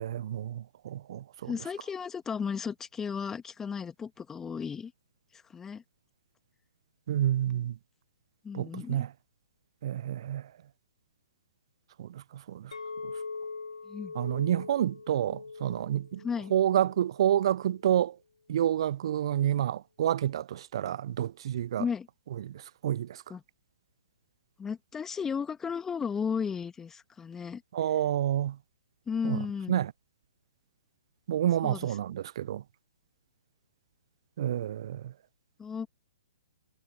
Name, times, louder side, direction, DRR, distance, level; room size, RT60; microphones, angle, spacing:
voice 1, 0.0-1.5 7.1-7.8 8.5-9.1 9.8-10.4 12.0-12.7 14.1-16.2 16.5-18.2 18.5-21.8 22.4-23.2 27.7-28.6 29.2-29.4 29.7-29.9 31.3-32.6 34.4-35.1, right 11 dB, 50° right, 0.7 m, -29 dB
voice 2, 1.5-4.9 5.3-5.8 8.4-9.1 13.9-14.1 16.2-16.5 21.8-22.1 23.3-23.4 24.6-27.6 29.1-29.7 31.6-32.0 35.6-35.9, left 6 dB, 10° left, 2.0 m, -34 dB
Chink clink, 12.7-17.9, left 4 dB, 80° left, 1.1 m, -42 dB
figure-of-eight pair, 125°, 3 cm